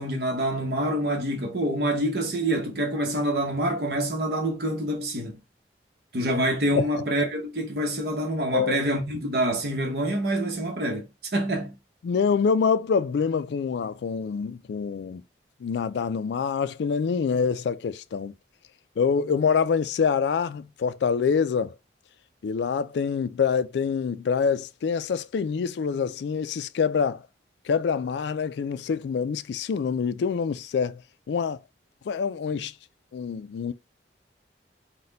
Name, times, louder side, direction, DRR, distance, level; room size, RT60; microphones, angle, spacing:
voice 1, 0.0-5.4 6.1-11.1 11.3-11.7, right 1 dB, 65° right, 0.9 m, -26 dB
voice 2, 12.0-15.2 15.6-18.3 19.0-21.7 22.4-27.2 27.7-31.0 31.3-31.6 32.1-32.7 33.1-33.7, left 6 dB, 75° left, 0.3 m, -26 dB
4.1 x 2.2 x 3.9 m
head